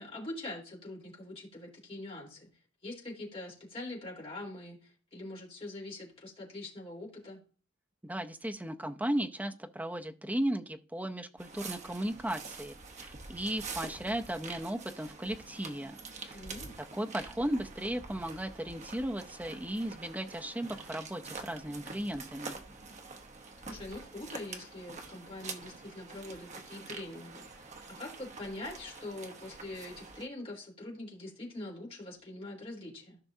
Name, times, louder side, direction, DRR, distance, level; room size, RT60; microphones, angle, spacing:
voice 1, 0.0-2.5 2.8-7.4 16.3-16.7 23.7-33.2, left 2 dB, 30° left, -3 dB, 3.6 m, -43 dB
voice 2, 8.0-16.0 16.3-16.4 16.9-22.6, right 1 dB, 10° right, 6 dB, 0.6 m, -36 dB
sound 1, 11.4-30.3, right 4 dB, 35° right, 0.9 m, -46 dB
14.5 x 5.9 x 2.7 m, 0.37 s
head